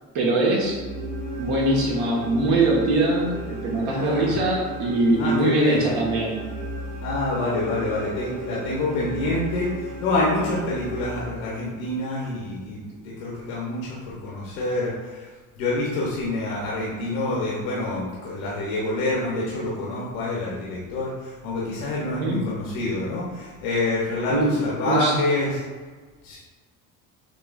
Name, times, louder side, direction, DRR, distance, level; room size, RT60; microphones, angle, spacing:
voice 1, 0.1-0.8 1.4-6.4 22.2-22.5 24.3-25.1, right 2 dB, 60° right, -2 dB, 1.4 m, -22 dB
sound 1, 0.6-11.9, equal, 80° right, 1.3 m, -35 dB
voice 2, 3.9-4.4 5.2-5.8 7.0-15.3 15.6-25.6 26.2-26.4, left 2 dB, 80° left, -5 dB, 1.1 m, -27 dB
6.6 x 3.2 x 2.5 m, 1.4 s
hypercardioid pair, 65°, 42 cm